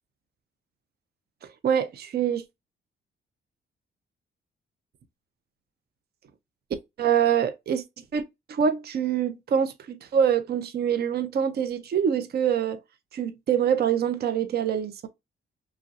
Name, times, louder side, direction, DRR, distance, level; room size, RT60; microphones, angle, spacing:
voice 1, 1.4-2.4 7.0-7.8 8.1-8.2 8.5-12.8 13.1-15.1, right 8 dB, 50° right, 0.5 m, -25 dB
3.0 x 2.6 x 2.4 m
cardioid pair, 95°, 21 cm